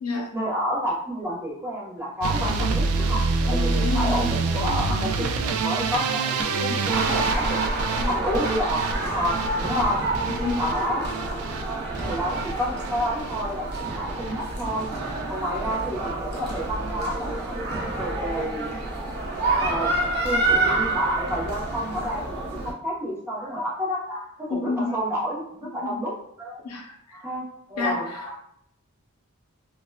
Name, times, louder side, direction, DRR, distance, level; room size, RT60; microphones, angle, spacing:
voice 1, 0.3-3.2 3.5-7.6 8.1-10.0 10.6-11.1 12.0-14.9 15.3-18.7 19.5-19.9 20.2-26.7 27.1-28.3, equal, 10° right, -5 dB, 0.7 m, -29 dB
sound 1, 2.2-14.3 14.6-15.2 15.5-16.1 16.4-16.7 17.0-17.1 17.3-17.4, right 4 dB, 75° right, 0.3 m, -27 dB
voice 2, 3.4-4.2 8.0-8.1 9.7-10.7 24.5-24.9 25.6-26.0 26.6-27.2 27.8-28.2, left 3 dB, 80° left, 2 dB, 0.6 m, -30 dB
sound 2, 6.9-22.7, right 2 dB, 50° right, 0.7 m, -28 dB
3.1 x 2.1 x 2.2 m, 0.71 s
head